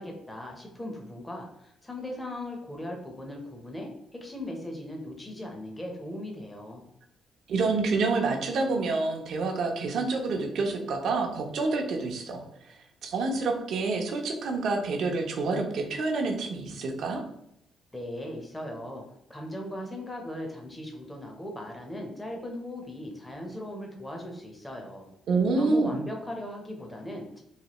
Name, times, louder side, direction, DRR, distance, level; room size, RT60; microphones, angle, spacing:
voice 1, 0.0-6.8 17.9-19.0 19.3-25.1 25.5-27.4, left 1 dB, 10° left, 1 dB, 0.7 m, -38 dB
voice 2, 7.5-17.2 25.3-26.0, right 3 dB, 70° right, 2 dB, 0.6 m, -28 dB
3.2 x 2.2 x 2.9 m, 0.75 s
cardioid pair, 90°, 0 cm